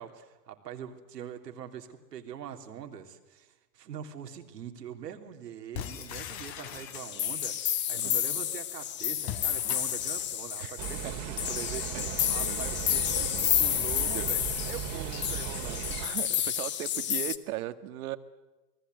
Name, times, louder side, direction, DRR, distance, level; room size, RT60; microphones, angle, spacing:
voice 1, 0.0-16.1, right 9 dB, 90° right, 5 dB, 3.3 m, -43 dB
sound 1, 5.7-7.5 9.2-10.3, left 9 dB, 55° left, 3.4 m, -40 dB
sound 2, 6.9-17.4, left 11 dB, 25° left, 1.1 m, -30 dB
sound 3, 10.8-16.1, right 10 dB, 40° right, 2.3 m, -37 dB
voice 2, 11.9-12.7 13.3-13.7 14.0-14.3 14.6-14.7 16.0-18.2, right 14 dB, 65° right, 11 dB, 1.7 m, -38 dB
29.0 x 20.5 x 7.9 m, 1.1 s
hypercardioid pair, 135°, 47 cm